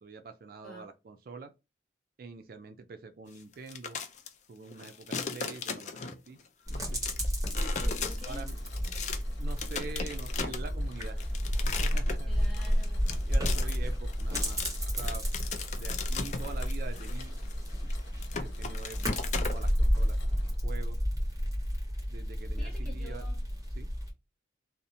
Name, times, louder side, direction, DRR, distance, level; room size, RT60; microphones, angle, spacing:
voice 1, 0.0-1.5 2.2-4.0 4.5-6.4 6.7-7.0 7.5-7.9 8.2-8.5 9.4-11.2 11.7-12.3 13.3-14.6 15.0-15.2 15.7-17.4 18.4-19.2 19.5-20.2 20.6-21.0 22.1-23.3 23.8-23.9, right 4 dB, 55° right, 0.3 m, -45 dB
sound 1, 3.5-4.3 4.7-6.3 6.7-9.2 9.6-19.7, left 5 dB, 40° left, 0.4 m, -37 dB
sound 2, 6.7-24.1, equal, 20° right, 1.1 m, -31 dB
voice 2, 7.8-8.5 12.3-13.2 22.6-23.4, left 2 dB, 5° left, 0.8 m, -48 dB
Mechanisms, 8.3-20.5, left 3 dB, 80° left, 0.6 m, -55 dB
2.8 x 2.0 x 2.6 m
head